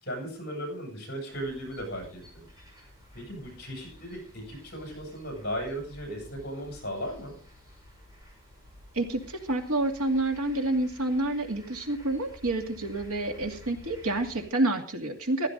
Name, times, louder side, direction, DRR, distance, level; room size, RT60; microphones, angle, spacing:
voice 1, 0.0-2.5 2.8-7.4, equal, 50° left, 2 dB, 7.8 m, -37 dB
sound 1, 1.3-14.4, left 1 dB, 15° right, 5.4 m, -52 dB
voice 2, 8.9-15.5, right 2 dB, 90° right, 4 dB, 2.4 m, -28 dB
15.5 x 13.5 x 4.0 m, 0.39 s
head